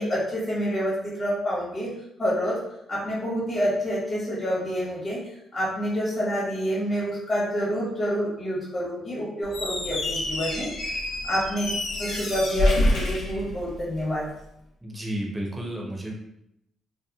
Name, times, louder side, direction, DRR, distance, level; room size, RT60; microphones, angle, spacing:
voice 1, 0.0-1.9 2.2-2.6 2.9-5.2 5.5-10.9 11.3-11.7 12.0-14.3, equal, 40° left, -8 dB, 1.0 m, -27 dB
Squeak, 9.4-14.1, left 1 dB, 75° left, 0.7 m, -27 dB
voice 2, 14.8-16.1, right 1 dB, 10° right, -1 dB, 0.6 m, -32 dB
2.8 x 2.1 x 2.3 m, 0.82 s
cardioid pair, 90°, 0 cm